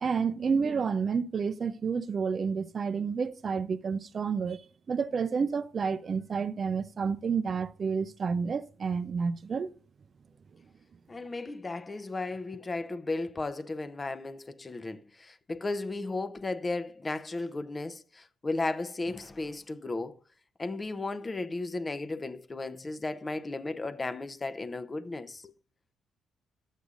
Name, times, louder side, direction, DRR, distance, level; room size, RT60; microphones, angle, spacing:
voice 1, 0.0-4.6 4.9-9.7, right 5 dB, 45° right, 0.5 m, -30 dB
voice 2, 11.1-20.2 20.6-25.5, left 2 dB, 25° left, 0.7 m, -35 dB
13.0 x 8.2 x 2.5 m
cardioid pair, 90°, 0 cm